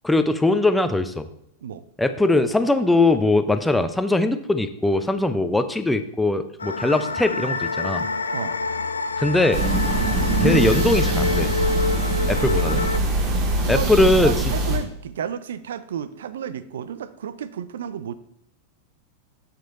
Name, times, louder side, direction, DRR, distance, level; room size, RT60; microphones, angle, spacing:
voice 1, 0.0-1.3 2.0-8.1 9.2-9.6 10.4-11.5 12.3-12.9 13.7-14.3, left 2 dB, 5° left, 9 dB, 0.7 m, -20 dB
sound 1, 6.6-13.0, left 3 dB, 75° left, 0.4 m, -27 dB
sound 2, 9.5-14.8, right 2 dB, 40° right, 1.9 m, -22 dB
voice 2, 13.6-18.1, right 8 dB, 60° right, 14 dB, 0.5 m, -32 dB
8.6 x 6.3 x 4.0 m, 0.73 s
figure-of-eight pair, 90°, 0 cm